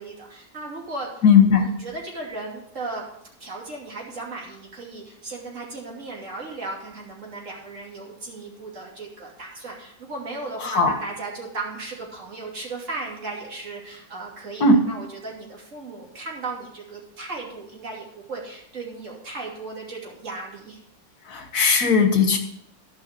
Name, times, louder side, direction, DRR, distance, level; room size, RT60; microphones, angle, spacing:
voice 1, 0.0-1.2 1.5-3.0 3.4-20.8, right 3 dB, 50° right, -3 dB, 3.2 m, -36 dB
voice 2, 1.2-1.7 10.6-10.9 14.6-14.8 21.3-22.4, left 5 dB, 70° left, 5 dB, 1.9 m, -17 dB
12.0 x 5.6 x 6.7 m, 0.74 s
omnidirectional pair, 1.7 m